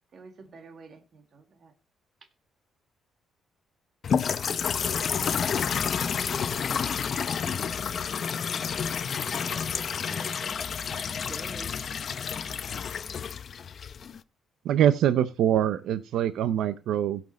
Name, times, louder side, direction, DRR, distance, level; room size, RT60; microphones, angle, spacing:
voice 1, 0.1-1.7 4.6-5.1 6.3-7.6 9.0-9.1, right 4 dB, 55° right, 2.0 m, -52 dB
sound 1, 4.0-14.2, left 7 dB, 50° left, 0.7 m, -30 dB
voice 2, 9.2-10.6 11.1-11.8, right 1 dB, 10° right, 1.0 m, -45 dB
voice 3, 14.6-17.2, right 10 dB, 80° right, 0.6 m, -24 dB
16.5 x 6.0 x 4.3 m
cardioid pair, 90°, 0 cm